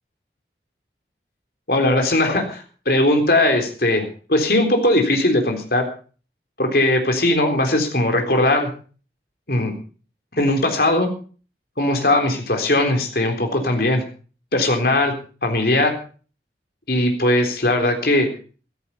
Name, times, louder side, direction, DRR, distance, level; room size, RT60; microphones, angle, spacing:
voice 1, 1.7-4.0 4.3-5.8 6.6-8.7 9.5-9.7 10.4-11.1 11.8-14.0 14.5-15.1 15.4-15.9 16.9-18.3, left 1 dB, 55° left, 4 dB, 3.8 m, -19 dB
14.0 x 13.5 x 5.5 m, 0.39 s
head